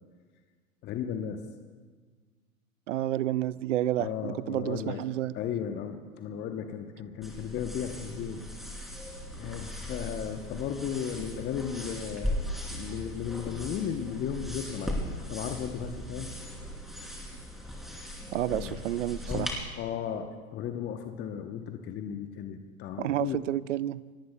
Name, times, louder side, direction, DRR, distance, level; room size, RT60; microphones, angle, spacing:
voice 1, 0.8-1.4 4.0-5.0 5.3-8.4 9.4-15.0 15.3-16.3 18.5-18.8 19.3-23.4, left 8 dB, 25° left, 6 dB, 0.9 m, -35 dB
voice 2, 2.9-5.3 18.3-19.5 23.0-24.0, right 13 dB, 60° right, 19 dB, 0.6 m, -30 dB
sound 1, 7.2-19.6, equal, ahead, 3.2 m, -38 dB
29.5 x 17.0 x 2.3 m, 1.5 s
figure-of-eight pair, 105°, 43 cm